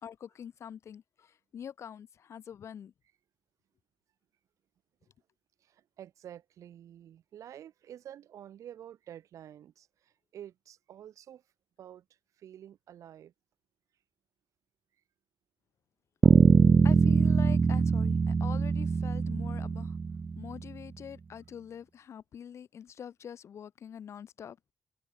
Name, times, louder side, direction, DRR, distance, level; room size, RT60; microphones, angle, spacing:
voice 1, 0.0-2.9 16.8-20.0 20.4-24.6, left 8 dB, 60° left, 2.2 m, -44 dB
voice 2, 5.6-11.4 11.8-12.0 12.4-13.3, right 10 dB, 85° right, 5.6 m, -49 dB
sound 1, 16.2-20.6, right 5 dB, 30° right, 0.3 m, -23 dB
cardioid pair, 130°, 5 cm